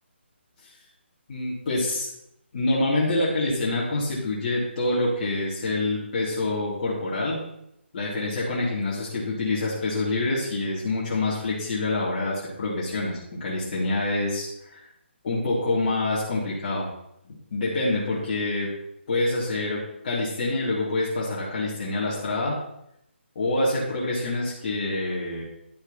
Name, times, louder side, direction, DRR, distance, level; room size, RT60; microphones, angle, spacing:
voice 1, 1.3-2.1 2.5-7.4 7.9-14.8 15.2-16.9 17.2-18.7 19.1-22.5 23.3-25.4, left 2 dB, 40° left, -7 dB, 3.1 m, -26 dB
11.0 x 7.7 x 4.3 m, 0.78 s
hypercardioid pair, 165°, 7 cm